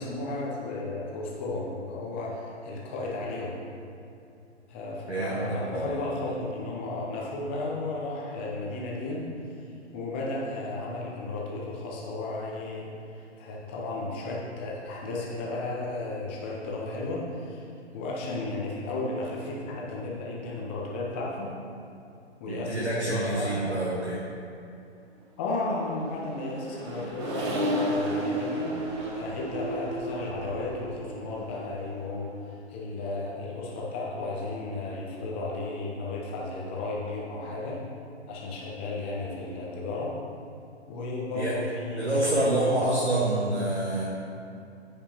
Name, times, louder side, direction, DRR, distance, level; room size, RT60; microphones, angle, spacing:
voice 1, 0.0-3.6 4.7-9.3 9.9-17.6 17.9-21.5 22.4-23.8 25.4-28.8 29.1-32.3 32.7-37.8 38.3-40.2 40.9-42.9, left 2 dB, 10° left, -4 dB, 0.5 m, -34 dB
voice 2, 5.1-5.9 22.5-24.2 41.3-41.5 42.0-44.0, right 2 dB, 70° right, -5 dB, 1.6 m, -27 dB
Accelerating revving vroom, 25.8-32.5, equal, 25° right, 0.9 m, -33 dB
14.5 x 5.0 x 2.9 m, 2.6 s
figure-of-eight pair, 130°, 34 cm